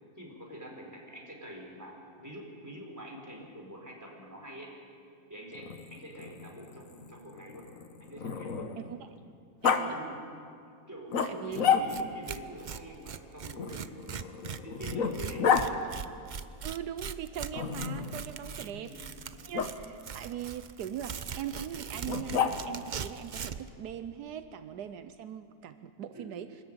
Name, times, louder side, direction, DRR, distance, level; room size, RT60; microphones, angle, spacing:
voice 1, 0.1-4.8 5.3-7.7 8.0-8.7 9.7-10.2 10.9-13.9 14.2-15.7 18.6-19.2 26.1-26.4, equal, 10° right, -1 dB, 4.2 m, -46 dB
Growling, 5.5-8.9 9.6-9.8 11.1-12.2 13.6-15.7 17.5-18.2 19.5-19.7 22.1-22.9, left 6 dB, 60° left, 1.4 m, -31 dB
voice 2, 9.6-10.0 11.2-11.8 16.6-18.9 19.4-26.5, right 9 dB, 80° right, 10 dB, 1.3 m, -40 dB
Tearing, 11.5-11.6 11.9-12.0 12.3-23.7, right 7 dB, 65° right, 0.4 m, -41 dB
25.0 x 13.5 x 8.8 m, 2.4 s
omnidirectional pair, 1.7 m